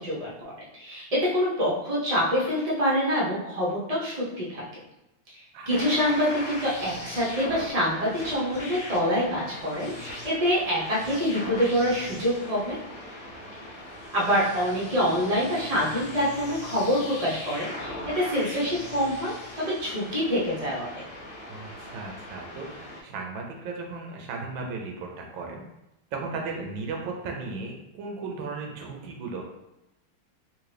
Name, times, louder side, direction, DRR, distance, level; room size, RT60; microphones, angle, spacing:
voice 1, 0.0-4.6 5.7-12.8 14.1-21.0, equal, 45° right, -7 dB, 0.4 m, -26 dB
sound 1, 5.7-23.0, left 1 dB, 65° left, 0.6 m, -40 dB
voice 2, 21.5-25.6 26.1-29.4, right 4 dB, 80° right, 1 dB, 1.3 m, -36 dB
3.6 x 2.6 x 3.3 m, 0.91 s
omnidirectional pair, 2.2 m